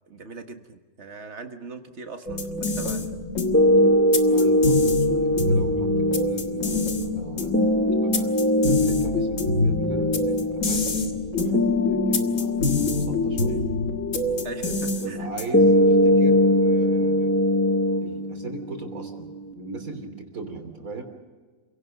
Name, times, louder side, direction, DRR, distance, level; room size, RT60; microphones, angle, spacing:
voice 1, 0.1-3.1 14.4-15.3, right 4 dB, 50° right, 6 dB, 1.9 m, -40 dB
sound 1, 2.3-15.7, left 2 dB, 60° left, 2.0 m, -26 dB
sound 2, 3.5-19.5, left 1 dB, 10° left, 1.0 m, -22 dB
voice 2, 4.2-8.3 8.7-13.7 14.6-17.3 18.0-21.0, right 3 dB, 70° right, 5 dB, 3.6 m, -38 dB
28.0 x 17.5 x 6.5 m, 1.4 s
omnidirectional pair, 1.5 m